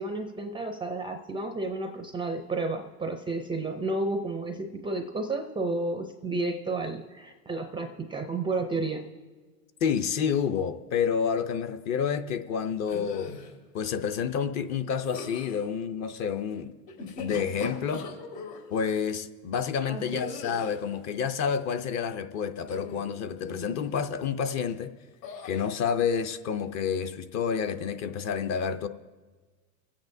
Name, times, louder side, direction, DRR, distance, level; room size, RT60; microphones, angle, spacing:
voice 1, 0.0-9.1 19.9-20.2, right 2 dB, 10° right, 5 dB, 0.4 m, -32 dB
voice 2, 9.8-13.3 13.7-16.7 17.2-18.0 18.7-24.9 25.4-28.9, left 7 dB, 35° left, 8 dB, 0.6 m, -29 dB
sound 1, 12.8-13.5 15.0-15.6 16.9-18.6 20.1-20.9 22.6-23.1 23.4-23.8 25.2-25.7, left 4 dB, 80° left, 2.7 m, -40 dB
24.5 x 8.6 x 2.6 m, 1.4 s
supercardioid pair, 115°, 47 cm